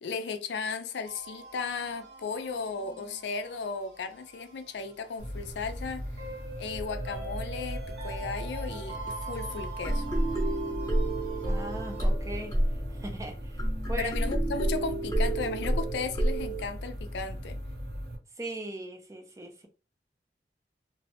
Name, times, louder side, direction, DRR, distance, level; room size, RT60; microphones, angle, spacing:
voice 1, 0.0-6.0 6.6-10.1 14.0-17.6, left 5 dB, 80° left, 0.4 m, -35 dB
sound 1, 1.0-12.1, right 3 dB, 90° right, 1.0 m, -44 dB
sound 2, 5.2-18.2, equal, 65° right, 0.7 m, -38 dB
sound 3, 9.8-16.7, right 1 dB, 15° left, 0.8 m, -29 dB
voice 2, 11.4-12.6 12.9-14.1 18.4-19.7, right 1 dB, 20° right, 0.4 m, -39 dB
2.5 x 2.1 x 2.7 m
head